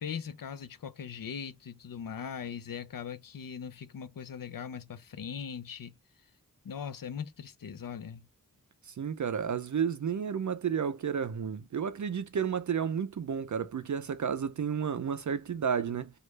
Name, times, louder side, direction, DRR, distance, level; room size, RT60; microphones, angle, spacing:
voice 1, 0.0-5.9 6.6-8.3, left 7 dB, 65° left, 0.5 m, -40 dB
voice 2, 9.0-16.1, right 7 dB, 50° right, 0.5 m, -31 dB
3.2 x 2.4 x 3.1 m
wide cardioid pair, 50°, 37 cm